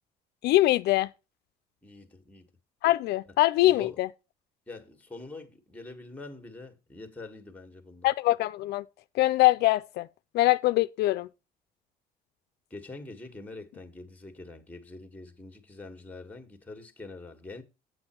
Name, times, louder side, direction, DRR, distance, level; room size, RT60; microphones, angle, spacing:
voice 1, 0.4-1.1 2.8-4.1 8.0-8.8 9.1-10.1 10.3-11.3, left 17 dB, 75° left, 0.4 m, -23 dB
voice 2, 1.8-2.5 3.6-4.0 4.7-8.1 12.7-17.6, left 2 dB, 10° left, 1.5 m, -44 dB
8.0 x 7.7 x 4.4 m
cardioid pair, 110°, 17 cm